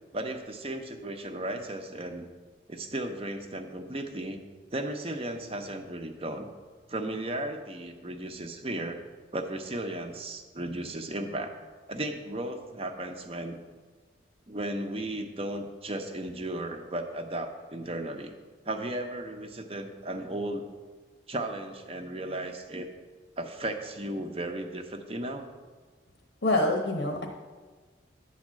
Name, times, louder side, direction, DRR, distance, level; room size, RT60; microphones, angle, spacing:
voice 1, 0.1-2.3 2.7-4.4 4.7-6.5 6.9-9.0 9.3-11.5 11.9-13.6 14.5-18.3 18.7-20.7 21.3-22.9 23.4-25.5, right 1 dB, 35° right, 5 dB, 0.7 m, -35 dB
voice 2, 26.4-27.3, left 2 dB, 80° left, 2 dB, 1.0 m, -25 dB
10.5 x 4.2 x 7.4 m, 1.4 s
head